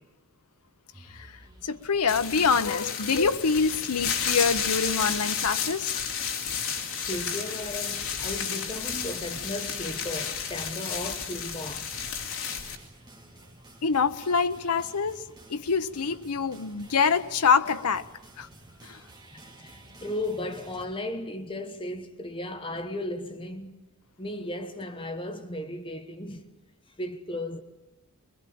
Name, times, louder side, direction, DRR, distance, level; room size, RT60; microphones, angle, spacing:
sound 1, 0.9-20.9, right 2 dB, 20° right, 3.4 m, -52 dB
voice 1, 1.6-6.0 13.8-18.1 18.4-18.5 18.8-19.0, left 5 dB, 85° left, 0.9 m, -25 dB
sound 2, 2.1-12.8, left 7 dB, 65° left, 2.9 m, -32 dB
voice 2, 6.9-12.0 19.3-23.9 24.2-26.5 27.0-27.6, left 1 dB, 25° left, 1.1 m, -35 dB
22.0 x 22.0 x 8.7 m
head